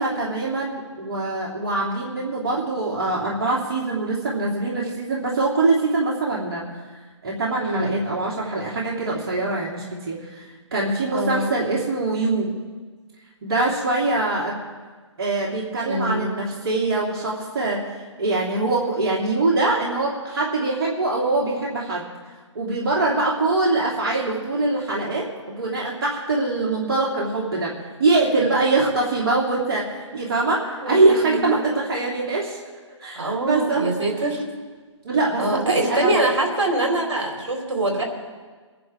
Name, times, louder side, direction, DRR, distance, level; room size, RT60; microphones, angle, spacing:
voice 1, 0.0-6.6 7.2-12.5 13.4-14.6 15.2-22.0 22.5-32.6 33.0-33.9 35.0-36.3, right 3 dB, 50° right, -4 dB, 3.1 m, -23 dB
voice 2, 7.6-8.0 11.1-11.5 15.9-16.4 30.8-31.4 33.1-34.4 35.4-38.0, right 1 dB, 70° right, 0 dB, 4.4 m, -24 dB
24.0 x 10.5 x 3.7 m, 1.4 s
figure-of-eight pair, 140°, 16 cm